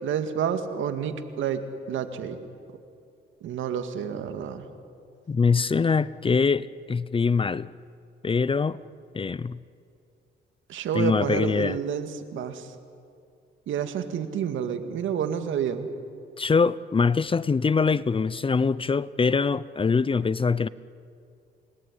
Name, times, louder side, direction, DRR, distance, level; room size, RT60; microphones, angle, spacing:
voice 1, 0.0-2.4 3.4-4.7 10.7-12.7 13.7-15.9, right 8 dB, 80° right, 8 dB, 2.2 m, -29 dB
voice 2, 5.3-7.7 8.2-8.8 9.1-9.6 10.9-11.8 16.4-20.7, left 5 dB, 25° left, 19 dB, 0.7 m, -23 dB
29.5 x 19.0 x 10.0 m, 2.4 s
cardioid pair, 90°, 20 cm